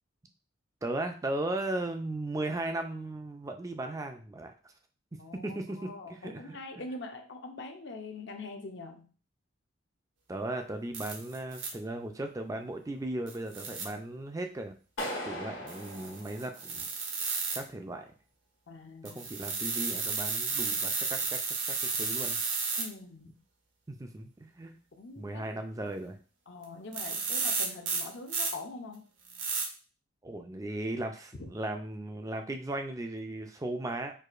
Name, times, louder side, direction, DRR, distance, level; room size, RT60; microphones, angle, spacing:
voice 1, 0.8-4.5 5.3-6.6 10.3-14.7 15.0-16.9 17.6-18.1 19.0-21.5 21.8-22.4 23.9-24.8 25.2-26.2 30.2-34.1, right 2 dB, 15° right, 5 dB, 0.3 m, -37 dB
voice 2, 5.1-9.1 18.7-19.3 22.8-23.4 25.0-25.5 26.5-29.0 31.4-31.5, left 3 dB, 60° left, 4 dB, 0.6 m, -43 dB
sound 1, 10.9-11.7 13.3-13.8 15.7-17.6 19.0-22.8 26.6-26.7 26.9-28.5 29.3-29.7, right 4 dB, 75° right, 0.9 m, -32 dB
Clapping, 15.0-17.0, left 1 dB, 85° left, 1.4 m, -39 dB
4.7 x 2.5 x 2.4 m, 0.38 s
head